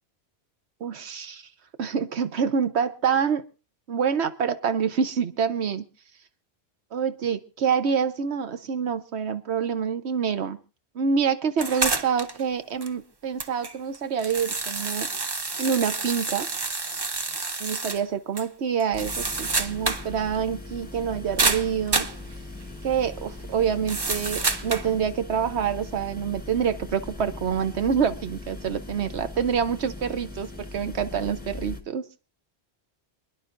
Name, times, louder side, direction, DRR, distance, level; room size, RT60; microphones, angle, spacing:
voice 1, 0.8-1.4 1.8-3.4 3.9-5.9 6.9-10.6 10.9-15.1 15.6-16.5 17.6-22.1 22.8-32.0, right 7 dB, 80° right, 1.2 m, -26 dB
sound 1, 11.6-12.4 12.8-12.9 13.4-18.0 18.4-18.5 18.8-20.1 20.3-20.4 21.4-22.2 23.9-24.9, right 3 dB, 30° right, 0.6 m, -28 dB
sound 2, 18.9-31.8, left 2 dB, 10° left, 1.5 m, -40 dB
28.0 x 10.5 x 2.6 m
omnidirectional pair, 1.1 m